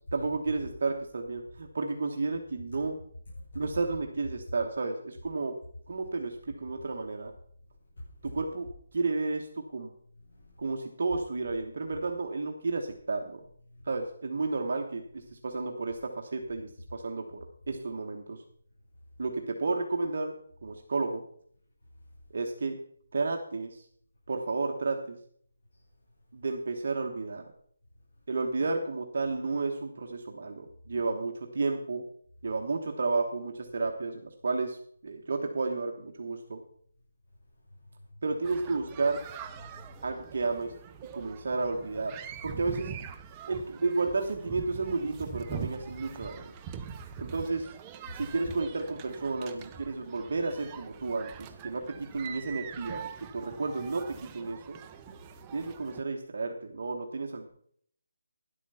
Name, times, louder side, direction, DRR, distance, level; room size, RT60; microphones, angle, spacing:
voice 1, 0.1-2.9 3.5-5.6 5.9-7.3 8.2-8.7 8.9-9.9 10.6-13.4 13.9-17.4 17.7-18.4 19.2-20.3 20.6-21.2 22.3-22.8 23.1-23.8 24.3-25.2 26.3-27.4 28.3-32.0 32.4-34.8 35.0-36.6 38.2-39.2 40.0-40.7 41.1-42.9 43.5-46.5 47.2-47.7 48.1-54.8 55.5-57.5, right 3 dB, 50° right, 3 dB, 1.2 m, -32 dB
voice 2, 7.9-8.4 10.1-10.8 11.0-11.2 12.7-12.8 13.7-14.0 38.3-38.4 39.6-40.1 48.2-48.3, left 1 dB, 55° left, -8 dB, 6.2 m, -47 dB
sound 1, 38.4-56.0, right 7 dB, 15° right, 0.5 m, -44 dB
11.0 x 8.3 x 5.6 m, 0.62 s
hypercardioid pair, 175°, 0 cm